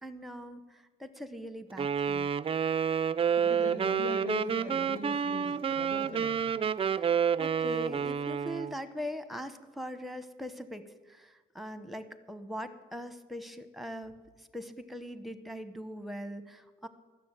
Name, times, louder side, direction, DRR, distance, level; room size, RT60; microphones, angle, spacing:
voice 1, 0.0-2.3 6.9-16.9, equal, ahead, 10 dB, 0.9 m, -41 dB
Wind instrument woodwind instrument, 1.8-8.7, right 7 dB, 30° right, 0.4 m, -29 dB
voice 2, 3.4-6.4, left 4 dB, 80° left, -1 dB, 2.8 m, -40 dB
13.0 x 6.9 x 8.9 m, 1.3 s
cardioid pair, 90°, 20 cm